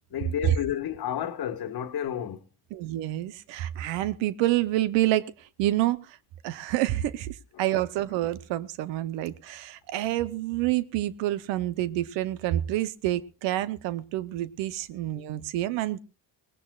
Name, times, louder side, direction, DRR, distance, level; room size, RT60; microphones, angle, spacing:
voice 1, 0.1-2.4 7.6-7.7 8.0-8.1, left 10 dB, 60° left, 1.4 m, -31 dB
voice 2, 2.7-6.2 6.4-16.0, right 14 dB, 85° right, 0.8 m, -28 dB
23.5 x 18.0 x 2.3 m
supercardioid pair, 75°, 43 cm